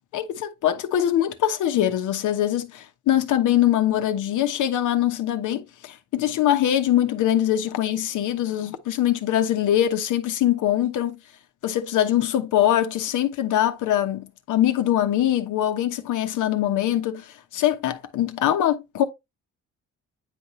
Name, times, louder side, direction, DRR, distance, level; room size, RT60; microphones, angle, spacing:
voice 1, 0.1-11.2 11.6-19.0, left 11 dB, 80° left, 1.0 m, -23 dB
9.3 x 4.2 x 3.1 m
cardioid pair, 90°, 30 cm